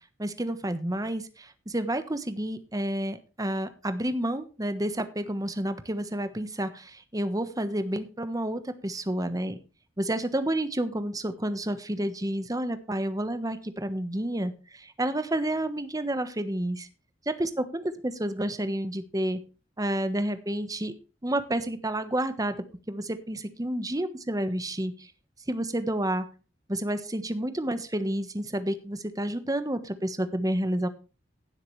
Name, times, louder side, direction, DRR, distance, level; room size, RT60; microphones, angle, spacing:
voice 1, 0.2-9.6 10.0-16.9 17.2-19.4 19.8-20.9 21.2-25.1 25.5-26.2 26.7-30.9, right 1 dB, 20° right, 10 dB, 1.3 m, -30 dB
16.5 x 7.6 x 3.3 m, 0.34 s
head